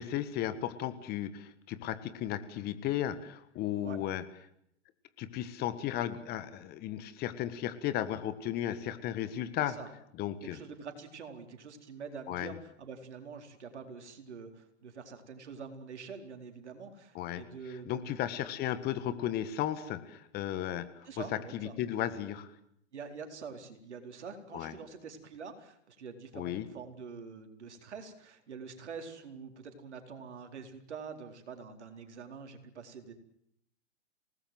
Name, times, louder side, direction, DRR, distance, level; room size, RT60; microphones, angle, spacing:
voice 1, 0.0-4.2 5.2-9.8 10.2-10.6 12.3-12.5 17.1-17.4 17.7-21.1 21.5-22.5 24.5-24.7 26.3-26.7, left 11 dB, 25° left, 12 dB, 1.6 m, -35 dB
voice 2, 9.6-9.9 10.4-18.1 21.0-21.7 22.9-33.1, right 5 dB, 70° right, 6 dB, 4.4 m, -46 dB
27.5 x 19.0 x 7.8 m, 0.71 s
hypercardioid pair, 120°, 36 cm